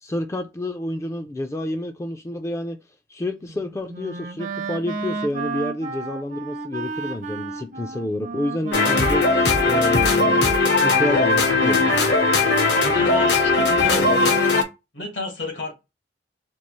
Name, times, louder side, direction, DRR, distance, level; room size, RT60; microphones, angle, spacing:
voice 1, 0.0-2.8 3.1-9.3 9.6-11.9, left 1 dB, 15° left, 0.3 m, -29 dB
Wind instrument woodwind instrument, 3.4-10.5, right 4 dB, 45° right, 0.5 m, -33 dB
sound 1, 8.7-14.6, left 3 dB, 65° left, 0.7 m, -18 dB
voice 2, 12.7-14.4 14.9-15.7, left 2 dB, 80° left, 1.5 m, -30 dB
4.5 x 2.3 x 3.0 m
head